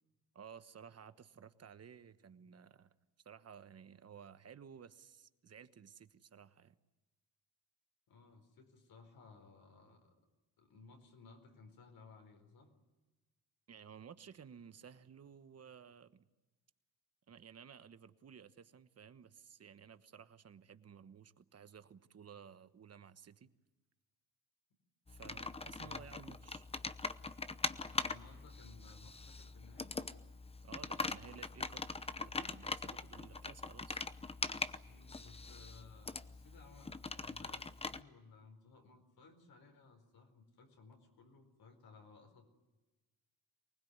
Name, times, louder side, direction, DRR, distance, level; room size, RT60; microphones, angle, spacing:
voice 1, 0.3-2.9 3.2-6.8 13.7-16.2 17.3-23.5 25.1-26.7 30.6-31.8 32.2-34.0, right 7 dB, 40° right, 12 dB, 1.2 m, -55 dB
voice 2, 8.1-10.1 10.6-12.7 25.2-25.5 25.7-26.1 27.9-30.0 34.8-42.6, left 4 dB, 65° left, 4 dB, 4.7 m, -60 dB
Computer keyboard, 25.1-38.0, left 3 dB, 15° left, 0.8 m, -42 dB
24.5 x 20.0 x 9.5 m, 1.1 s
cardioid pair, 125°, 38 cm